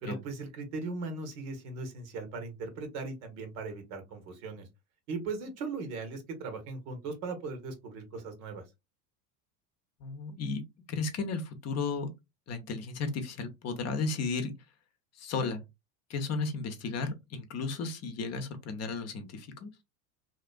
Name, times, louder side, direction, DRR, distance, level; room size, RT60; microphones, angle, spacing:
voice 1, 0.0-4.7 5.1-8.6, right 3 dB, 70° right, 1.2 m, -38 dB
voice 2, 10.0-10.6 10.9-12.1 12.5-14.5 15.2-15.6 16.1-19.7, left 4 dB, 35° left, 0.7 m, -34 dB
2.9 x 2.4 x 2.2 m
hypercardioid pair, 90°, 44 cm